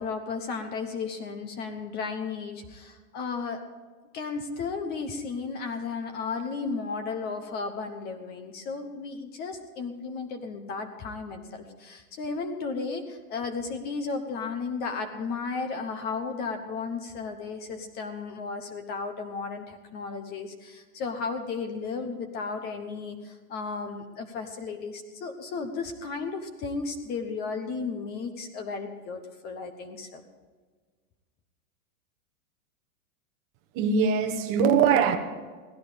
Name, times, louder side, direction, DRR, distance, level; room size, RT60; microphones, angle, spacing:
voice 1, 0.0-3.6 4.1-30.2, left 4 dB, 20° left, 1.0 m, -34 dB
voice 2, 33.7-35.2, right 6 dB, 30° right, 1.1 m, -22 dB
16.5 x 13.5 x 5.1 m
supercardioid pair, 160°, 43 cm